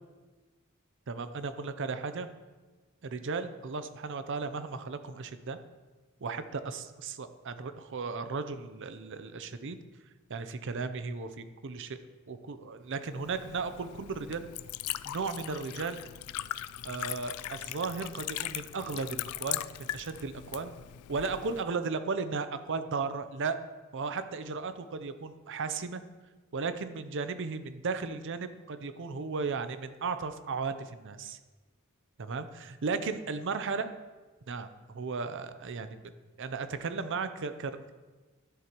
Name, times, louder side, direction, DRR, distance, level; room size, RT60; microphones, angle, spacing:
voice 1, 1.1-2.3 3.0-5.6 6.2-9.8 10.3-12.0 12.3-14.5 15.0-16.0 16.8-20.7 21.1-23.6 23.9-26.0 26.5-31.4 32.2-33.9 34.5-36.0 36.4-37.9, right 4 dB, 60° right, 10 dB, 0.6 m, -35 dB
Liquid, 13.1-21.6, left 14 dB, 85° left, 0.3 m, -39 dB
12.5 x 7.5 x 3.0 m, 1.3 s
head